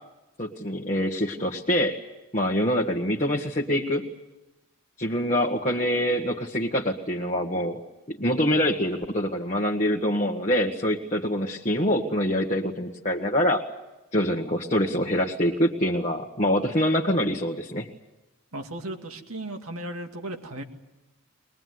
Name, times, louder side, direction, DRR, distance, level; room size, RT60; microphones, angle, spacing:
voice 1, 0.4-2.0 2.3-4.1 5.0-7.8 8.1-13.6 14.1-17.9, equal, 35° left, -1 dB, 1.6 m, -25 dB
voice 2, 18.5-20.6, right 1 dB, 90° right, 4 dB, 2.3 m, -35 dB
22.0 x 21.5 x 9.6 m, 1.0 s
head